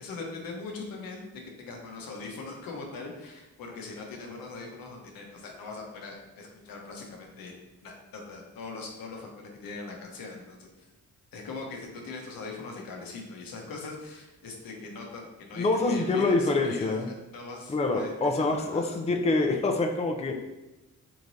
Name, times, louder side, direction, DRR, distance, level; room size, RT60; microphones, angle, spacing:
voice 1, 0.0-7.5 7.8-10.9 11.3-19.0, left 3 dB, 75° left, 1 dB, 0.8 m, -41 dB
voice 2, 15.6-17.1 17.7-20.4, left 3 dB, 20° left, 3 dB, 0.5 m, -26 dB
3.7 x 3.0 x 2.7 m, 1.0 s
supercardioid pair, 50°, 35 cm